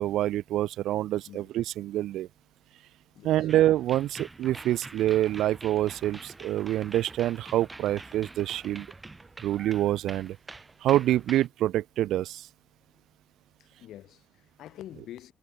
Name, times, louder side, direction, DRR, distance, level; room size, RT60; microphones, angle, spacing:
voice 1, 0.0-2.3 3.2-8.9 9.4-10.4 10.8-12.5, right 13 dB, 75° right, 0.4 m, -26 dB
voice 2, 3.1-3.5 13.6-15.3, left 13 dB, 65° left, 5.9 m, -46 dB
sound 1, 3.5-11.5, right 2 dB, 10° right, 1.6 m, -46 dB
cardioid pair, 180°, 0 cm